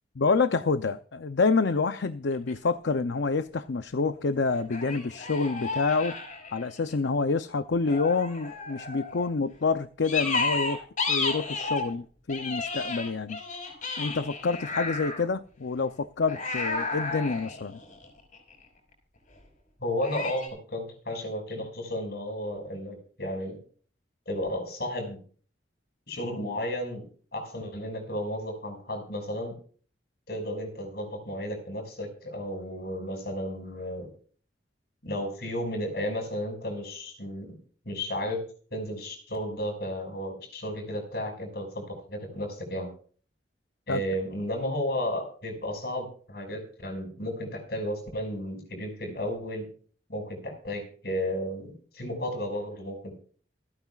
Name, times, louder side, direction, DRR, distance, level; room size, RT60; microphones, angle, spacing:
voice 1, 0.2-6.2 6.5-13.4 14.0-17.8 43.9-44.0, left 4 dB, 80° left, 0.6 m, -27 dB
sound 1, 2.3-2.5 4.7-6.9 7.9-9.3 10.0-11.9 12.3-15.3 16.3-18.5 20.0-20.5, left 4 dB, 45° left, 5.6 m, -32 dB
voice 2, 19.8-23.6 24.3-25.2 26.1-27.1 27.3-29.5 30.3-34.1 35.0-37.6 37.8-38.4 38.7-42.9 43.9-49.7 50.1-53.1, equal, 60° left, 6.1 m, -33 dB
27.5 x 9.5 x 2.4 m
head